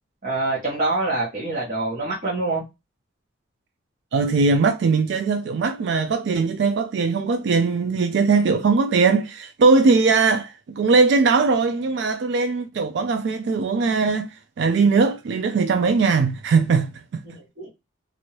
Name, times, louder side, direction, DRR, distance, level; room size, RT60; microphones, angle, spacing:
voice 1, 0.2-2.6 17.3-17.7, right 2 dB, 40° right, 1.0 m, -25 dB
voice 2, 4.1-17.2, right 4 dB, 60° right, 0.3 m, -20 dB
2.9 x 2.6 x 2.9 m
head